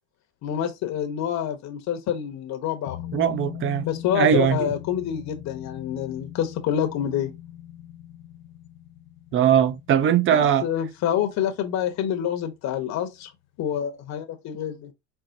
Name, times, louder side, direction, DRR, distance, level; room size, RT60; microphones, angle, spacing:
voice 1, 0.4-3.2 3.8-7.3 10.3-13.3 13.6-14.9, left 9 dB, 45° left, 0.9 m, -27 dB
sound 1, 2.9-12.0 12.3-12.4, left 12 dB, 70° left, 0.7 m, -41 dB
voice 2, 3.1-3.9 4.1-4.7 9.3-10.7, right 9 dB, 30° right, 0.6 m, -20 dB
4.4 x 2.1 x 3.8 m
supercardioid pair, 100°, 40 cm